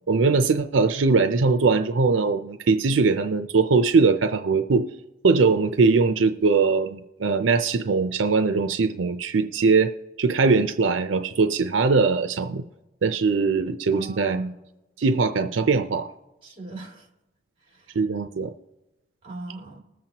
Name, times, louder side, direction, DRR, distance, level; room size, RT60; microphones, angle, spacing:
voice 1, 0.1-4.9 5.2-9.9 10.2-12.6 13.0-14.4 15.0-16.1 18.0-18.5, right 4 dB, 80° right, 8 dB, 0.5 m, -21 dB
voice 2, 13.9-14.5 16.4-17.1 17.7-18.0 19.2-19.8, right 3 dB, 30° right, 0 dB, 2.5 m, -37 dB
20.5 x 7.5 x 2.9 m, 1.0 s
head